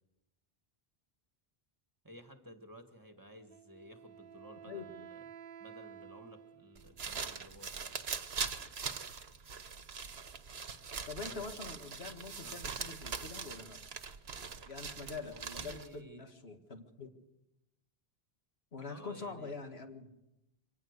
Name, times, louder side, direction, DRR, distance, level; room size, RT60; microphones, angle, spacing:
voice 1, 2.0-5.3 5.6-8.0 11.3-11.6 12.4-12.6 15.2-16.3 18.9-19.6, equal, 20° right, 6 dB, 1.8 m, -54 dB
Wind instrument woodwind instrument, 3.5-7.1, right 8 dB, 65° right, 1.1 m, -52 dB
sound 1, 6.8-16.0, right 5 dB, 85° right, 1.4 m, -42 dB
voice 2, 11.1-13.8 14.7-17.1 18.7-20.1, left 4 dB, 85° left, 5 dB, 2.2 m, -45 dB
24.5 x 18.5 x 6.7 m, 0.90 s
omnidirectional pair, 1.0 m